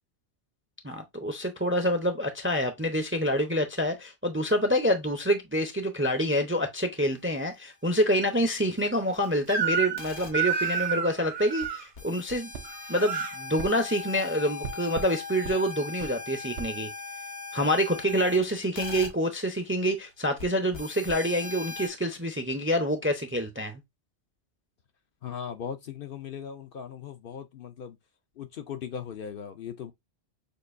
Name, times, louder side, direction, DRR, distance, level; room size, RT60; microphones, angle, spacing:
voice 1, 0.8-12.5 12.9-16.9 17.5-23.8, equal, 15° right, 0.5 m, -27 dB
Crying sobbing / Screech, 9.5-10.1 10.3-11.8 12.7-13.3, right 7 dB, 55° right, 0.9 m, -29 dB
sound 1, 10.0-10.3 11.6-11.7 11.9-19.1 20.4-20.5 20.7-21.9, left 4 dB, 80° left, 1.8 m, -39 dB
sound 2, 12.5-12.7 13.6-13.7 14.6-15.1 15.4-15.6 16.0-16.1 16.6-16.7, right 6 dB, 75° right, 0.9 m, -38 dB
voice 2, 25.2-28.0 28.4-29.9, left 8 dB, 60° left, 0.7 m, -38 dB
6.6 x 2.6 x 2.5 m
omnidirectional pair, 1.2 m